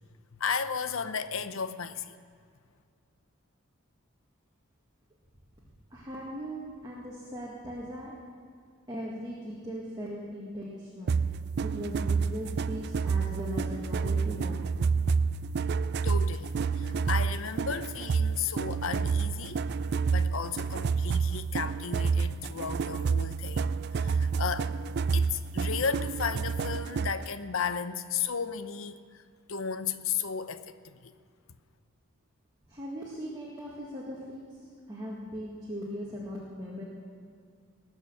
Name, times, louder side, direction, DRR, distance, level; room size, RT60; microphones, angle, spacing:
voice 1, 0.3-2.2 16.0-19.6 20.1-24.7 25.1-29.2 29.5-31.1, left 6 dB, 70° left, 11 dB, 0.7 m, -34 dB
voice 2, 5.9-8.2 8.9-11.2 11.6-14.8 32.7-36.8, equal, 20° right, -5 dB, 1.9 m, -39 dB
sound 1, 11.1-27.3, right 5 dB, 50° right, 0.3 m, -29 dB
20.0 x 6.7 x 7.5 m, 2.3 s
head